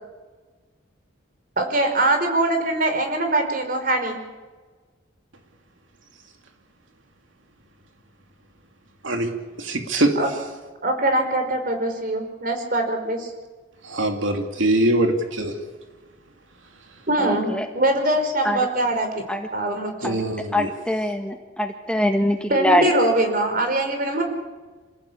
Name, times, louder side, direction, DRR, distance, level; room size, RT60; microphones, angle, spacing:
voice 1, 1.6-4.2 10.1-10.3 10.8-13.3 17.1-19.1 19.5-20.1 22.5-24.2, right 1 dB, 45° right, 6 dB, 5.0 m, -22 dB
voice 2, 9.7-10.1 13.8-15.5 20.0-20.7, right 1 dB, 75° right, 4 dB, 2.7 m, -22 dB
voice 3, 17.2-17.7 18.4-18.6 19.3-19.4 20.0-20.2 20.5-22.9, left 1 dB, 5° left, 4 dB, 1.6 m, -23 dB
28.0 x 17.0 x 8.7 m, 1.3 s
head